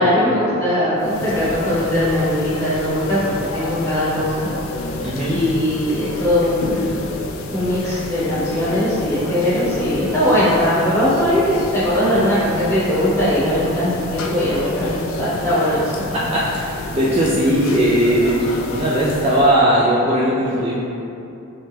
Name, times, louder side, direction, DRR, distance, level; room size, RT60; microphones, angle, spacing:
voice 1, 0.0-4.5 5.3-7.1 7.5-16.1, left 1 dB, 15° left, -12 dB, 1.0 m, -20 dB
sound 1, 1.0-19.6, left 3 dB, 70° left, 0.3 m, -30 dB
voice 2, 5.0-5.4 16.1-18.4 18.7-20.7, right 1 dB, 30° right, -7 dB, 0.3 m, -18 dB
3.3 x 2.8 x 3.2 m, 2.7 s
head